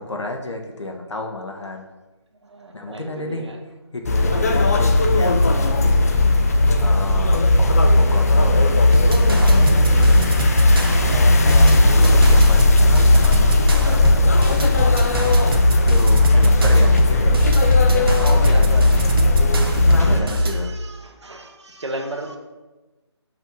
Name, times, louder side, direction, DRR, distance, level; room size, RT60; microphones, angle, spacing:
voice 1, 0.0-1.9 2.7-3.5 3.9-6.1 6.8-8.7 9.3-10.3 11.0-14.5 15.8-17.4 17.9-19.1 19.8-20.7, left 2 dB, 80° left, 2 dB, 1.4 m, -32 dB
voice 2, 2.4-3.6 9.9-10.1 16.3-16.9 18.2-18.9 19.6-22.4, right 1 dB, 75° right, 4 dB, 1.3 m, -34 dB
sound 1, 4.1-20.2, left 2 dB, 35° left, 0.5 m, -16 dB
sound 2, 8.9-20.6, right 1 dB, 55° right, 1.0 m, -24 dB
5.8 x 4.5 x 5.4 m, 1.1 s
figure-of-eight pair, 165°, 15 cm